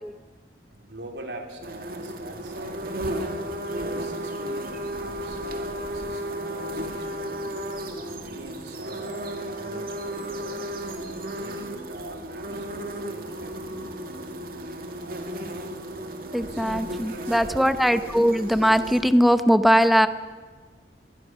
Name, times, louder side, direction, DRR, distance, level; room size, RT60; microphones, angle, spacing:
voice 1, 0.7-3.3 3.7-7.4 7.9-13.8 14.9-15.5 16.4-16.7 17.0-17.8, right 1 dB, 75° right, 3 dB, 3.4 m, -43 dB
sound 1, 1.6-19.0, right 1 dB, 55° right, 2.2 m, -34 dB
voice 2, 16.3-20.1, equal, ahead, 11 dB, 0.7 m, -20 dB
22.5 x 20.5 x 6.2 m, 1.5 s
head